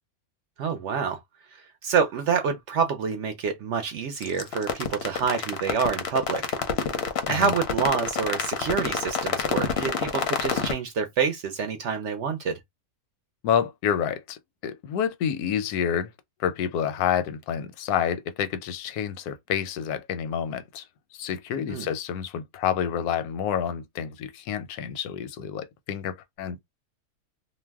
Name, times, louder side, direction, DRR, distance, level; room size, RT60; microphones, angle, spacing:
voice 1, 0.6-1.2 1.5-6.4 7.3-12.6 21.7-21.9, right 6 dB, 65° right, 0.7 m, -27 dB
sound 1, 4.2-10.7, left 6 dB, 60° left, 0.7 m, -27 dB
voice 2, 13.4-16.1 16.4-20.9 21.1-26.6, left 8 dB, 85° left, 1.1 m, -28 dB
2.6 x 2.1 x 3.3 m
omnidirectional pair, 1.6 m